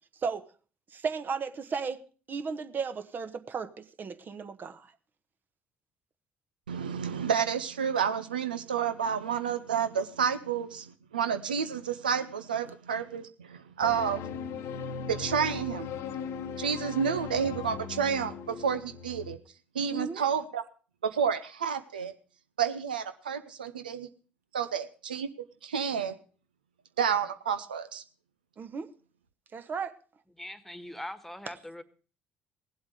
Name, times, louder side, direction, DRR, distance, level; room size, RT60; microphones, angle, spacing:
voice 1, 0.9-2.0 2.3-4.9 19.9-20.2 28.6-28.9 29.5-29.9, right 5 dB, 40° right, 10 dB, 1.2 m, -34 dB
voice 2, 6.7-14.2 15.1-15.9 16.6-19.4 19.7-20.6 21.0-22.1 22.6-24.1 24.5-25.3 25.6-26.2 27.0-28.0, right 7 dB, 85° right, 10 dB, 0.6 m, -30 dB
sound 1, 13.8-19.4, left 5 dB, 65° left, 0.9 m, -38 dB
voice 3, 30.4-31.8, left 1 dB, 5° left, 12 dB, 1.5 m, -41 dB
18.0 x 7.9 x 5.1 m, 0.38 s
figure-of-eight pair, 55°, 5 cm